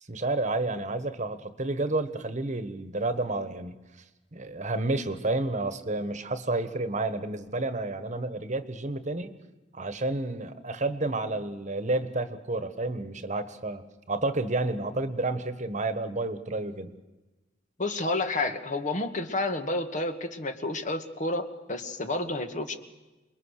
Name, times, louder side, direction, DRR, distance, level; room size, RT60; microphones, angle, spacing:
voice 1, 0.1-3.7 4.3-9.3 9.7-13.8 14.1-16.9, right 2 dB, 40° right, 11 dB, 1.4 m, -30 dB
voice 2, 17.8-22.8, left 2 dB, 45° left, 7 dB, 1.7 m, -30 dB
28.5 x 21.5 x 6.6 m, 1.1 s
head